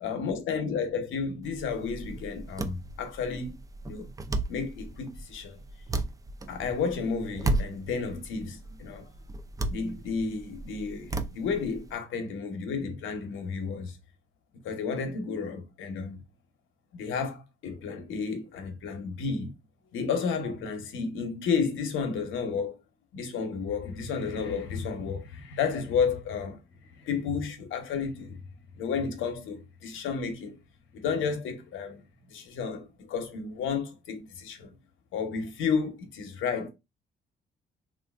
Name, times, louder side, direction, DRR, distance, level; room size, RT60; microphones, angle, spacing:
voice 1, 0.0-3.6 3.9-4.1 4.5-5.6 6.5-9.1 9.7-14.0 14.6-16.2 16.9-19.5 19.9-22.8 23.1-28.4 28.7-30.6 30.9-32.0 32.3-34.7 35.1-36.7, left 5 dB, 80° left, 0.8 m, -32 dB
sound 1, 1.4-11.9, right 2 dB, 15° right, 0.4 m, -35 dB
3.1 x 2.5 x 2.4 m
cardioid pair, 90°, 20 cm